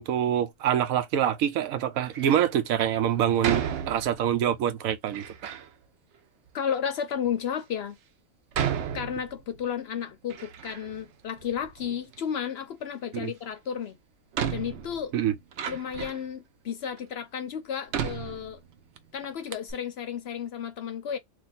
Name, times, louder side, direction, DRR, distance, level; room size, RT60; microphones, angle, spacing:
voice 1, 0.0-5.5 13.1-13.3 15.1-15.3, right 10 dB, 85° right, 1.1 m, -25 dB
Door, 2.0-2.5 3.4-4.4 5.1-5.7 6.5-6.6 7.3-7.4 8.5-9.7 10.0-11.1 11.4-12.2 13.6-13.7 14.3-16.3 17.0-17.1 17.9-19.0 19.2-19.3 19.5-19.7, right 8 dB, 65° right, 0.9 m, -33 dB
voice 2, 6.5-8.0 8.9-14.0 14.5-15.1 15.7-18.6 19.1-21.2, left 8 dB, 65° left, 0.7 m, -33 dB
2.8 x 2.5 x 4.0 m
omnidirectional pair, 1.4 m